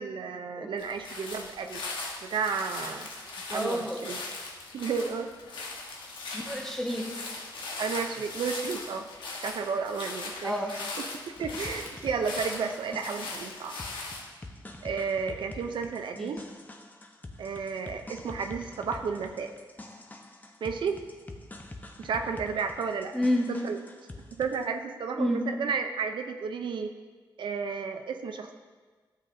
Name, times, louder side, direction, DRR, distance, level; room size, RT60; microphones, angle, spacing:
voice 1, 0.0-1.8 2.2-3.1 3.5-4.2 4.7-5.3 7.8-9.1 9.4-10.9 11.3-13.7 14.8-16.4 17.4-19.5 20.6-21.0 22.0-23.1 23.5-23.8 24.4-26.9 27.4-28.5, right 5 dB, 75° right, 5 dB, 0.6 m, -32 dB
sound 1, 0.8-14.2, left 3 dB, 80° left, 1.2 m, -39 dB
voice 2, 3.5-4.0 6.3-7.2 10.4-10.8 16.2-16.3 23.1-23.6 25.2-25.4, left 1 dB, 5° left, 1 dB, 1.3 m, -29 dB
sound 2, 11.4-24.6, left 2 dB, 20° left, 0.8 m, -46 dB
12.0 x 7.3 x 2.7 m, 1.4 s
cardioid pair, 70°, 8 cm